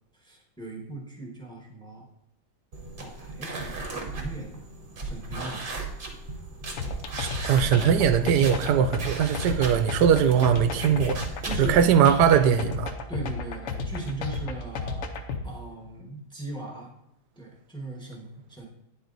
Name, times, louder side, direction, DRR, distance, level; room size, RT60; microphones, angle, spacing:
voice 1, 0.1-2.1 3.0-4.6 5.0-5.7 6.8-7.0 11.4-12.5 13.1-15.1 15.4-16.9 17.4-18.7, right 1 dB, 5° left, 1.0 m, -38 dB
sound 1, 2.7-11.9, right 2 dB, 40° right, 0.9 m, -36 dB
sound 2, 6.8-15.4, left 4 dB, 60° left, 0.9 m, -32 dB
voice 2, 7.2-11.2 11.6-12.9, right 8 dB, 85° right, 1.2 m, -21 dB
9.3 x 3.9 x 3.9 m
omnidirectional pair, 1.7 m